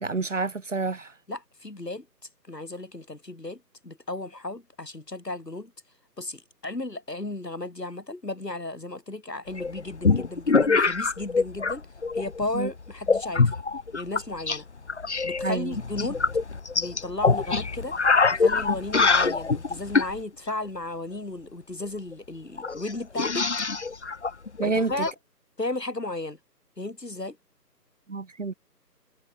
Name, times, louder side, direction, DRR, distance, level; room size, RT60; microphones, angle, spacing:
voice 1, 0.0-1.1 12.5-12.7 15.4-15.7 24.6-24.9 28.1-28.5, right 4 dB, 50° right, 0.7 m, -28 dB
voice 2, 1.3-2.1 2.5-5.7 6.2-11.8 12.1-13.6 13.9-14.7 15.2-16.2 16.8-18.0 18.3-23.7 24.6-25.1 25.6-26.4 26.8-27.4, left 2 dB, 75° left, 6.4 m, -34 dB
sound 1, 9.6-11.8 12.0-12.5 13.1-14.6 14.9-20.2 21.8-21.9 22.1-22.2 22.6-25.1, left 4 dB, 45° left, 0.9 m, -24 dB
figure-of-eight pair, 150°, 50 cm